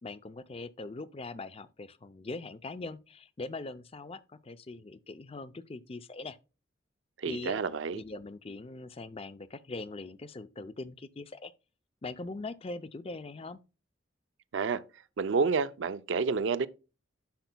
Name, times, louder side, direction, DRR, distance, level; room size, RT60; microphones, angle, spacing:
voice 1, 0.0-6.4 7.2-7.6 7.9-11.5 12.0-13.6, left 3 dB, 30° left, 0.5 m, -41 dB
voice 2, 7.2-8.0 14.5-14.8 15.2-16.7, right 5 dB, 70° right, 0.5 m, -29 dB
10.5 x 6.8 x 2.2 m
head